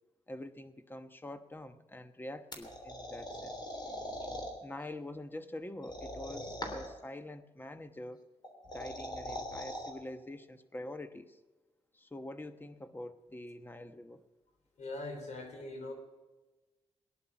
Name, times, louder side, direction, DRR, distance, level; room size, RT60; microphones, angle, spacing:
voice 1, 0.3-3.6 4.6-8.3 8.7-11.4 11.9-14.2, left 1 dB, 15° left, 10 dB, 1.1 m, -45 dB
sound 1, 2.5-4.5 5.8-7.0 8.4-9.9, left 1 dB, 40° left, 3.3 m, -41 dB
voice 2, 14.8-15.9, left 2 dB, 75° left, 4 dB, 3.3 m, -41 dB
18.5 x 10.5 x 6.0 m, 1.2 s
cardioid pair, 90°, 12 cm